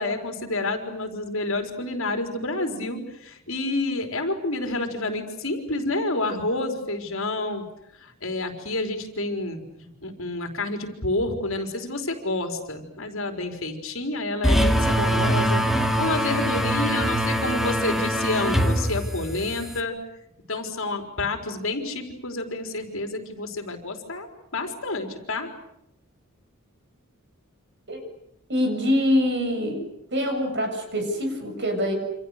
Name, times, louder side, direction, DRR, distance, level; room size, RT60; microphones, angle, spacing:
voice 1, 0.0-7.6 8.0-15.6 16.0-20.0 20.5-24.3 24.5-25.5, left 2 dB, 65° left, 5 dB, 4.4 m, -29 dB
sound 1, 14.4-19.8, equal, ahead, 2.2 m, -23 dB
voice 2, 28.5-29.8 30.1-31.9, left 1 dB, 55° right, 4 dB, 7.4 m, -24 dB
28.5 x 27.0 x 6.7 m, 0.81 s
head